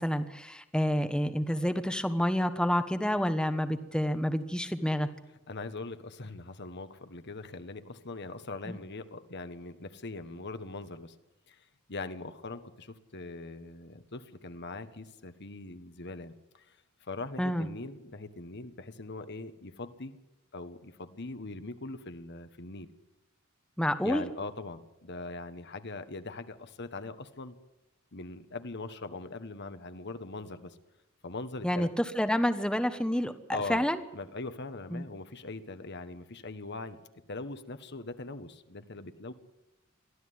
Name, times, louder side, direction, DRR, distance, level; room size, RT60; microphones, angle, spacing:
voice 1, 0.0-5.1 8.7-8.8 17.4-17.7 23.8-24.2 31.6-34.0 34.9-35.0, equal, 5° left, 9 dB, 1.2 m, -29 dB
voice 2, 5.5-11.1 11.5-20.2 20.5-22.9 24.0-27.6 28.1-30.8 31.2-31.9 33.5-37.0 37.3-39.3, left 3 dB, 55° left, 10 dB, 1.4 m, -41 dB
23.0 x 15.0 x 9.5 m, 0.95 s
head